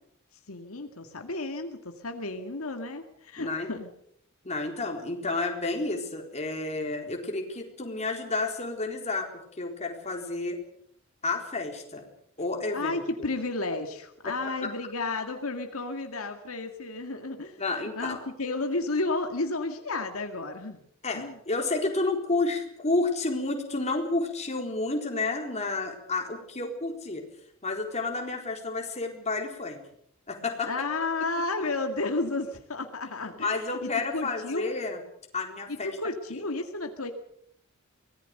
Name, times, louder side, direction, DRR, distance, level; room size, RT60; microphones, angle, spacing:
voice 1, 0.5-3.9 12.7-20.8 21.1-21.4 30.7-34.7 35.7-37.1, left 2 dB, 75° left, 5 dB, 2.0 m, -32 dB
voice 2, 3.4-3.7 4.4-9.3 9.6-10.6 11.2-12.1 12.4-12.9 14.2-14.7 17.6-18.2 21.0-27.3 27.6-29.8 30.3-30.7 33.3-35.0 35.3-35.9, left 3 dB, 30° left, 3 dB, 4.1 m, -30 dB
24.5 x 18.5 x 6.7 m, 0.70 s
head